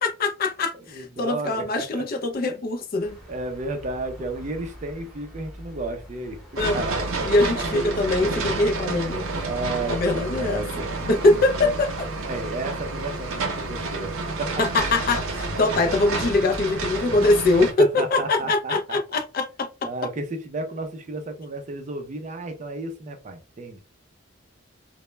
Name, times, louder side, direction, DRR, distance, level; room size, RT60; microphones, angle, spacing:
voice 1, 0.0-3.2 6.6-6.8 7.3-9.2 9.9-10.7 11.1-12.1 14.6-19.7, left 2 dB, 45° left, 0.3 m, -22 dB
voice 2, 0.7-2.0 3.3-6.4 6.7-7.3 7.6-7.7 9.4-10.9 11.6-11.7 12.2-14.6 17.6-19.0 19.8-23.8, right 2 dB, 35° right, 0.4 m, -33 dB
sound 1, 3.0-10.2, equal, ahead, 0.8 m, -45 dB
sound 2, 6.6-17.7, right 3 dB, 85° right, 0.6 m, -29 dB
2.0 x 2.0 x 3.1 m
head